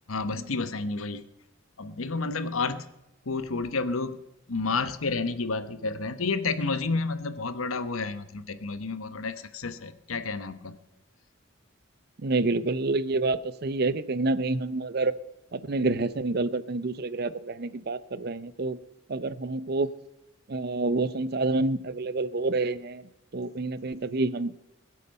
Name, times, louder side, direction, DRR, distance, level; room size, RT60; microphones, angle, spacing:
voice 1, 0.1-1.2 1.8-2.8 3.3-4.2 4.5-10.8, left 3 dB, 90° left, 12 dB, 1.0 m, -30 dB
voice 2, 12.2-15.1 15.5-18.8 19.1-19.9 20.5-23.0 23.3-24.5, right 3 dB, 50° right, 16 dB, 0.6 m, -28 dB
21.5 x 8.3 x 5.4 m, 0.94 s
head